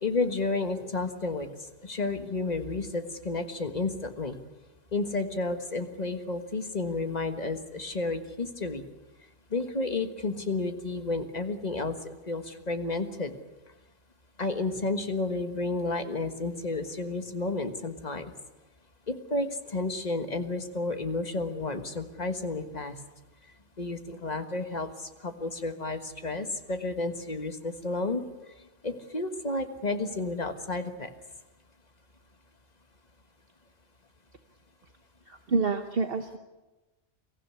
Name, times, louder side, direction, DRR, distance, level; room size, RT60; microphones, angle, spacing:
voice 1, 0.0-1.5 1.8-4.3 4.9-8.8 9.5-11.9 12.3-13.3 14.4-18.3 19.1-22.9 23.8-24.9 25.2-28.2 28.8-31.1, left 3 dB, 35° left, 8 dB, 1.6 m, -31 dB
voice 2, 35.3-36.4, right 4 dB, 55° right, 7 dB, 1.3 m, -28 dB
23.0 x 15.0 x 9.7 m, 1.1 s
omnidirectional pair, 1.2 m